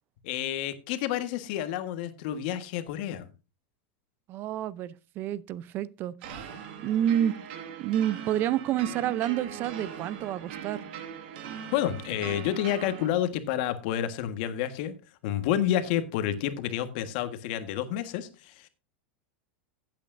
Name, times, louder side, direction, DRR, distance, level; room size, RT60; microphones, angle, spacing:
voice 1, 0.2-3.3 11.7-14.9 15.2-18.7, left 11 dB, 60° left, 1.5 m, -29 dB
voice 2, 4.3-7.4 7.8-10.8, right 11 dB, 40° right, 0.6 m, -29 dB
sound 1, 6.2-13.1, right 8 dB, 65° right, 2.0 m, -40 dB
15.0 x 8.5 x 2.6 m
supercardioid pair, 135°, 6 cm